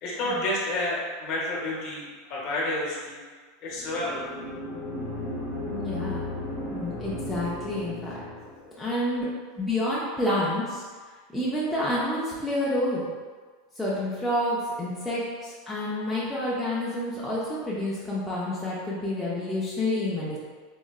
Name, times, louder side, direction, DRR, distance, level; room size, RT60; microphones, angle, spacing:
voice 1, 0.0-3.2 3.6-4.3 8.6-8.9, left 1 dB, 40° left, -4 dB, 0.7 m, -30 dB
sound 1, 3.7-8.7, left 1 dB, 75° right, 1.4 m, -35 dB
voice 2, 5.7-6.3 6.7-8.2 8.8-9.3 9.6-10.8 11.3-13.1 13.8-20.4, left 1 dB, ahead, -9 dB, 0.3 m, -29 dB
3.7 x 2.1 x 2.3 m, 1.5 s
supercardioid pair, 170°, 0 cm